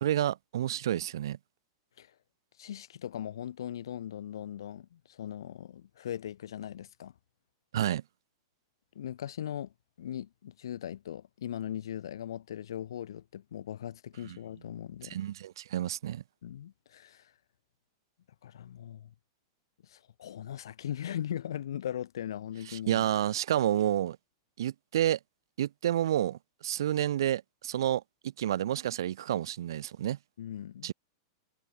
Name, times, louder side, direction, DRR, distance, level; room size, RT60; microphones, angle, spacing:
voice 1, 0.0-1.4 7.7-8.0 14.2-14.4 15.0-16.2 22.7-24.2 24.6-25.2 25.6-28.0 28.4-30.2 30.8-30.9, right 11 dB, 75° right, 0.7 m, -29 dB
voice 2, 2.6-7.1 9.0-9.7 10.0-15.2 16.4-17.2 18.4-19.1 19.9-23.0 30.4-30.9, left 10 dB, 90° left, 3.7 m, -39 dB
supercardioid pair, 175°, 2 cm